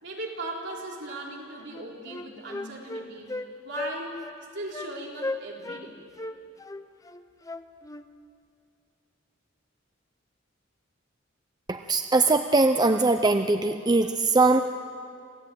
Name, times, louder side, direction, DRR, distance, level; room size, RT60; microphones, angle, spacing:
voice 1, 0.0-3.4 3.6-4.2 4.5-5.9, right 1 dB, 65° right, -2 dB, 4.4 m, -38 dB
Wind instrument woodwind instrument, 1.3-1.4 1.7-3.5 3.8-4.0 4.2-4.4 4.7-4.9 5.2-5.8 6.2-8.1, left 2 dB, 15° left, 0.7 m, -36 dB
voice 2, 11.7-14.6, right 3 dB, 20° right, 7 dB, 0.6 m, -21 dB
27.0 x 16.0 x 9.3 m, 2.4 s
head